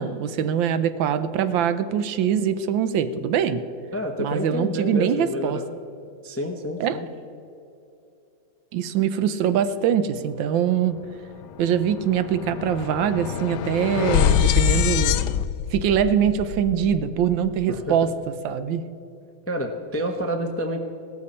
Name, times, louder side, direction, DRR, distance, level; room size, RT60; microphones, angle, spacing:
voice 1, 0.0-3.6 4.2-5.6 6.8-7.0 8.7-11.0 11.6-15.2 15.7-18.1 18.4-18.8, right 8 dB, 80° right, 12 dB, 1.4 m, -23 dB
voice 2, 3.9-5.7 6.2-7.1 17.7-18.1 19.5-20.8, equal, 15° left, 4 dB, 0.4 m, -29 dB
sound 1, 11.0-11.1 11.4-17.7, left 10 dB, 70° left, 1.1 m, -25 dB
16.5 x 13.0 x 4.3 m, 2.7 s
omnidirectional pair, 2.1 m